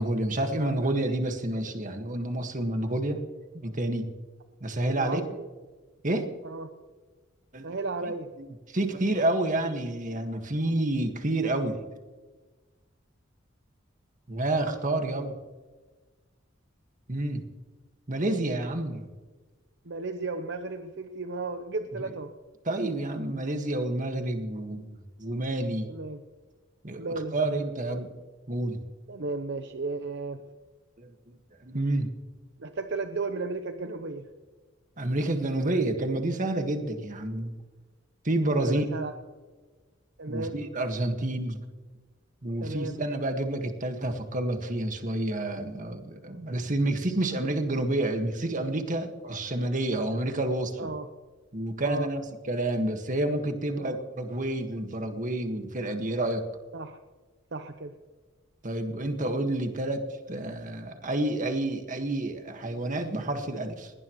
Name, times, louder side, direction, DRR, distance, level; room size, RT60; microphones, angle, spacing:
voice 1, 0.0-3.2 3.5-4.1 4.6-5.2 6.0-6.3 7.5-7.7 8.4-11.8 14.3-15.4 17.1-17.4 18.1-19.1 22.7-25.9 26.8-28.1 28.5-28.8 31.0-32.1 35.0-37.6 38.2-39.0 40.3-41.6 42.4-50.9 51.5-56.4 58.6-63.9, right 1 dB, 40° right, 5 dB, 1.7 m, -29 dB
voice 2, 4.9-5.5 6.4-6.7 7.6-8.3 19.8-22.3 25.8-26.2 27.0-27.5 29.1-30.4 32.6-34.3 38.6-39.1 40.2-40.6 42.6-43.0 50.1-50.2 50.8-51.1 51.8-52.1 53.8-54.0 56.7-57.0 57.5-58.0, right 3 dB, 65° right, 7 dB, 0.8 m, -34 dB
21.0 x 18.0 x 3.1 m, 1.3 s
head